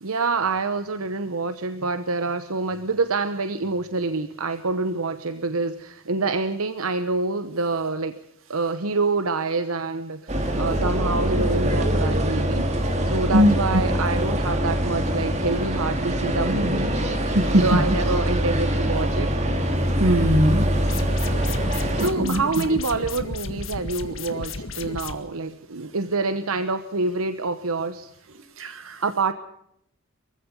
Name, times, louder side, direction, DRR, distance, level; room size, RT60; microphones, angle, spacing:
voice 1, 0.0-8.2 8.5-19.4 21.9-28.1 29.0-29.3, right 3 dB, 90° right, 10 dB, 1.0 m, -27 dB
sound 1, 10.3-22.1, equal, 30° right, 2.5 m, -24 dB
voice 2, 13.3-13.8 17.3-17.8 20.0-20.7 22.0-22.6 28.6-29.0, equal, 75° right, 9 dB, 2.2 m, -20 dB
sound 2, 20.7-25.1, left 3 dB, 65° left, 1.8 m, -33 dB
23.5 x 15.5 x 8.3 m, 0.75 s
head